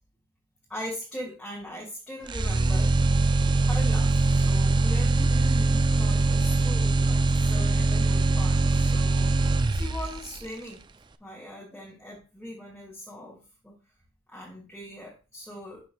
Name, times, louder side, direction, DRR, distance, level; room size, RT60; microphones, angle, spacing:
voice 1, 0.7-2.9 3.6-10.8 11.2-13.7 14.3-15.8, equal, 5° left, -5 dB, 2.1 m, -40 dB
sound 1, 2.3-10.3, right 3 dB, 25° right, 0.4 m, -22 dB
11.5 x 6.0 x 2.3 m, 0.34 s
head